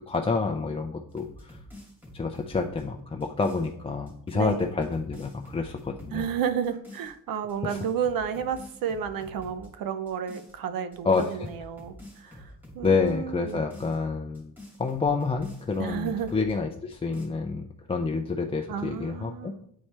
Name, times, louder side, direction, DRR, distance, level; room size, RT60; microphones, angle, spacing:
voice 1, 0.1-1.6 2.1-6.3 7.6-7.8 11.0-11.5 12.3-12.4 12.8-14.5 14.8-19.5, left 4 dB, 15° left, 3 dB, 0.4 m, -28 dB
sound 1, 1.1-3.7 4.1-6.3 6.6-7.1 7.5-9.7 10.1-10.6 10.9-13.1 13.5-16.6 16.9-17.3, left 1 dB, 5° right, 2.3 m, -47 dB
voice 2, 4.3-4.7 6.1-12.4 12.7-13.6 15.8-16.3 18.7-19.7, right 7 dB, 80° right, 11 dB, 0.7 m, -31 dB
8.4 x 4.3 x 3.3 m, 0.71 s
cardioid pair, 105°, 34 cm